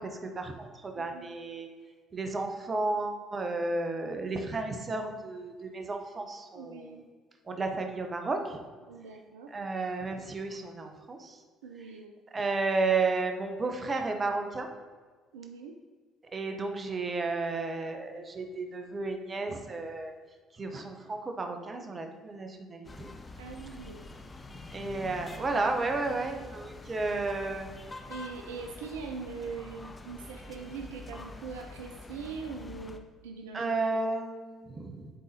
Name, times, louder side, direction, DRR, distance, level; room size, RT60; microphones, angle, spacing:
voice 1, 0.0-1.7 2.1-7.0 7.5-8.6 9.5-11.4 12.3-14.7 16.3-20.1 20.5-23.1 24.7-27.7 33.5-35.1, right 3 dB, 35° right, 4 dB, 0.9 m, -32 dB
voice 2, 1.0-1.3 6.5-7.0 8.9-9.5 11.6-12.1 15.3-15.7 23.4-24.0 28.1-34.3, right 5 dB, 80° right, 3 dB, 0.4 m, -42 dB
sound 1, 22.8-33.0, left 2 dB, 25° left, 0.6 m, -46 dB
10.5 x 3.9 x 2.7 m, 1.5 s
hypercardioid pair, 55°, 0 cm